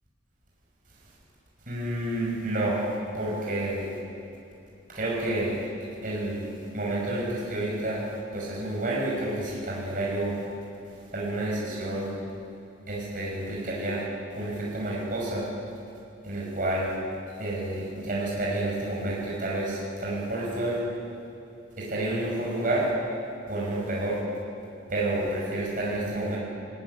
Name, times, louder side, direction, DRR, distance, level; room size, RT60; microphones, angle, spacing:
voice 1, 1.7-2.8 3.1-3.9 4.9-5.6 6.0-6.5 6.7-8.0 8.3-10.4 11.1-12.1 12.9-14.0 14.3-15.5 16.2-16.9 17.4-20.8 21.8-22.9 23.5-24.2 24.9-26.4, right 1 dB, 45° right, -5 dB, 6.0 m, -29 dB
19.0 x 16.5 x 10.0 m, 2.7 s
head